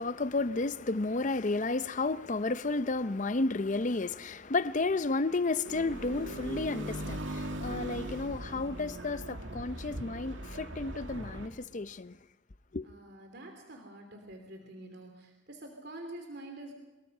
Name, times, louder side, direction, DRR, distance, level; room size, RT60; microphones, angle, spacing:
voice 1, 0.0-12.2 12.7-12.9, left 3 dB, 40° left, 0.7 m, -32 dB
sound 1, 5.7-11.5, right 1 dB, 70° right, 2.4 m, -39 dB
voice 2, 12.8-16.7, right 1 dB, 55° right, 3.1 m, -46 dB
24.5 x 22.0 x 5.5 m
head